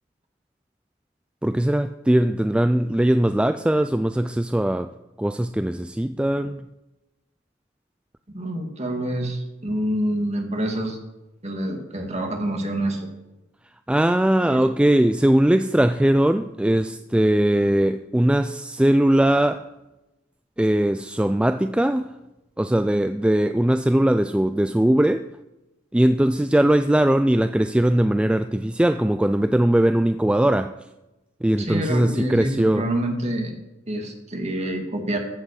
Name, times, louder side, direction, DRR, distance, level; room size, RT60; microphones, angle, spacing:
voice 1, 1.4-4.9 5.2-6.7 13.9-19.6 20.6-22.1 22.6-25.2 25.9-30.7 31.4-32.9, right 1 dB, 5° right, 0.3 m, -20 dB
voice 2, 8.3-11.0 11.4-13.1 14.4-14.6 31.6-33.5 33.9-35.2, right 1 dB, 35° right, 2.0 m, -27 dB
15.0 x 5.9 x 6.5 m
head